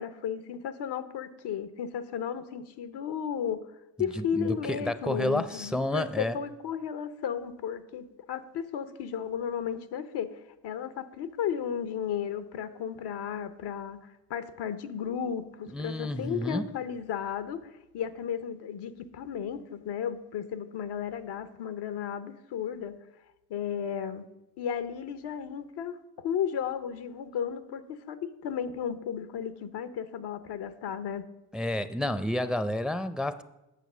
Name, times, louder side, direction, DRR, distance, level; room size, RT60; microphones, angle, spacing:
voice 1, 0.0-3.7 4.0-22.9 23.5-24.3 24.6-31.2, left 8 dB, 80° left, 0.8 m, -34 dB
voice 2, 4.2-6.4 15.7-16.7 31.5-33.4, left 1 dB, ahead, 0.5 m, -30 dB
8.5 x 6.4 x 6.1 m
cardioid pair, 65°, 39 cm